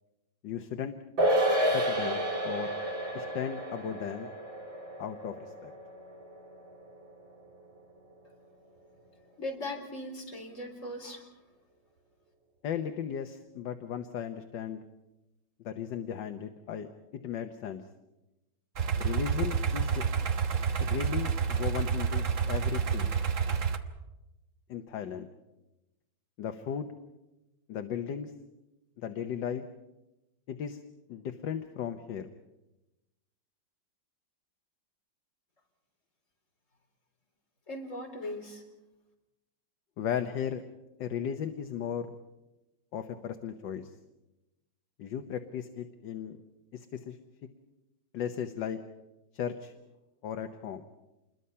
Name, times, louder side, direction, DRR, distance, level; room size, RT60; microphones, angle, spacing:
voice 1, 0.4-1.0 1.7-2.7 3.1-4.3 5.0-5.7 12.6-14.8 15.6-16.9 17.2-17.8 19.0-20.0 20.8-23.1 24.7-25.3 26.4-26.9 27.7-28.3 29.0-29.6 30.5-30.8 31.1-32.3 40.0-40.6 41.0-42.2 42.9-43.9 45.0-46.4 46.7-47.2 48.1-48.8 49.3-49.7 50.2-50.9, left 8 dB, 70° left, 7 dB, 1.6 m, -36 dB
sound 1, 1.2-7.8 8.1-8.2, equal, 70° right, 3.7 m, -31 dB
voice 2, 9.4-11.3 37.7-38.6, left 1 dB, 40° left, 1 dB, 4.3 m, -39 dB
sound 2, 18.8-23.8, right 6 dB, 45° right, 1.3 m, -29 dB
27.5 x 22.0 x 5.6 m, 1.0 s
omnidirectional pair, 2.1 m